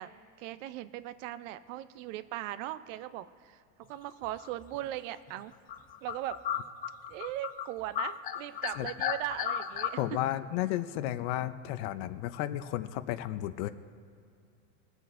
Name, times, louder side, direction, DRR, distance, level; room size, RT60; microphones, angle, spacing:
voice 1, 0.0-5.5 6.0-6.4 7.1-10.2, right 14 dB, 65° right, 14 dB, 0.7 m, -39 dB
sound 1, 4.4-4.8 5.3-5.4 5.7-7.7 8.0-9.9, left 10 dB, 25° left, 0.4 m, -34 dB
voice 2, 10.0-13.7, left 13 dB, 55° left, 11 dB, 0.7 m, -33 dB
21.0 x 8.0 x 3.7 m, 2.4 s
supercardioid pair, 135°, 40 cm